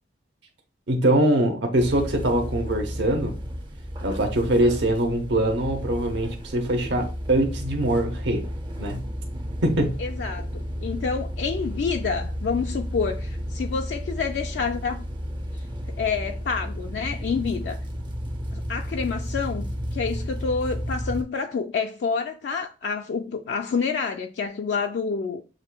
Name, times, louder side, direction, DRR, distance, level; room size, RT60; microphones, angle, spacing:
voice 1, 0.9-3.4 4.0-8.4 8.8-9.1 9.6-10.0, right 1 dB, 70° right, 0.8 m, -23 dB
sound 1, 1.7-21.2, equal, 25° right, 0.5 m, -32 dB
voice 2, 10.0-15.0 15.9-17.8 18.5-25.4, left 5 dB, 65° left, 0.3 m, -28 dB
7.2 x 2.5 x 2.2 m
head